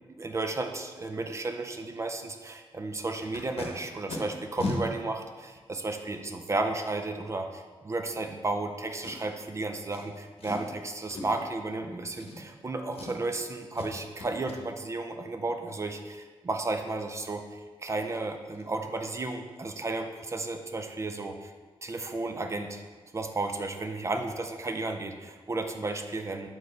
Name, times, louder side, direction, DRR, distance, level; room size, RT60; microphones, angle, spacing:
voice 1, 0.2-21.5 21.8-22.8 23.1-26.5, right 2 dB, 30° right, 5 dB, 0.4 m, -33 dB
Packing tape duct tape, 3.1-3.7 4.1-4.2 4.6-4.8 5.6-5.7 9.0-9.4 9.9-10.0 10.4-10.7 11.1-11.5 12.1-12.6 12.9-13.4 13.7-13.9 14.2-14.6 17.6-17.7 18.0-18.2 18.5-18.7 19.0-19.2 19.5-19.6, left 3 dB, 75° left, 0.9 m, -37 dB
6.4 x 4.5 x 3.2 m, 1.4 s
wide cardioid pair, 130°, 10 cm